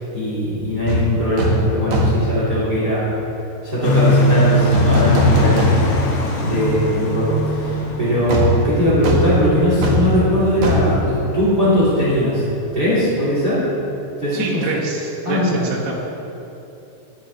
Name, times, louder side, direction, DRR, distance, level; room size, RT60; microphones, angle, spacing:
voice 1, 0.0-3.1 3.6-5.7 6.4-12.4 12.7-13.7 14.2-14.6 15.2-15.6, equal, 30° right, -9 dB, 2.5 m, -19 dB
sound 1, 0.9-1.0 1.4-1.6 1.9-2.3 4.7-6.1 6.5-6.6 8.3-11.9 12.2-12.4, equal, 60° right, 2.1 m, -19 dB
sound 2, 3.8-12.6, left 1 dB, 70° left, 1.9 m, -22 dB
voice 2, 14.3-15.9, right 4 dB, 80° right, -4 dB, 4.0 m, -25 dB
11.0 x 11.0 x 3.9 m, 2.9 s
omnidirectional pair, 5.1 m